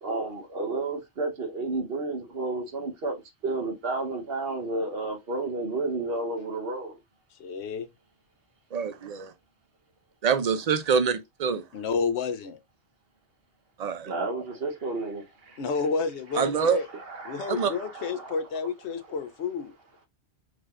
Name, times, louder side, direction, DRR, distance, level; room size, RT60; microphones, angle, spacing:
voice 1, 0.0-7.0 14.0-15.6 16.9-18.4, right 3 dB, 60° right, 1.3 m, -32 dB
voice 2, 7.4-7.9 11.7-12.6 15.6-16.9 17.3-19.7, left 5 dB, 75° left, 1.0 m, -30 dB
voice 3, 8.7-9.3 10.2-11.6 13.8-14.1 16.3-16.8 17.5-17.7, right 6 dB, 45° right, 0.6 m, -25 dB
4.9 x 3.7 x 2.4 m
omnidirectional pair, 1.1 m